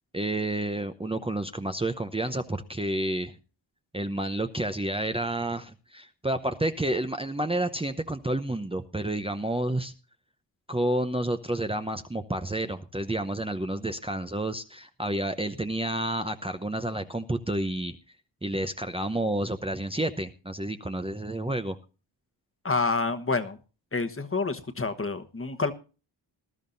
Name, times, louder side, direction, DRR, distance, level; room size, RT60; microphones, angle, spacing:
voice 1, 0.1-3.3 3.9-9.9 10.7-18.0 18.4-21.8, right 1 dB, 10° right, 7 dB, 0.8 m, -30 dB
voice 2, 22.6-23.6 23.9-25.7, left 3 dB, 30° left, 9 dB, 1.3 m, -28 dB
20.0 x 12.5 x 2.6 m, 0.34 s
cardioid pair, 80°, 45 cm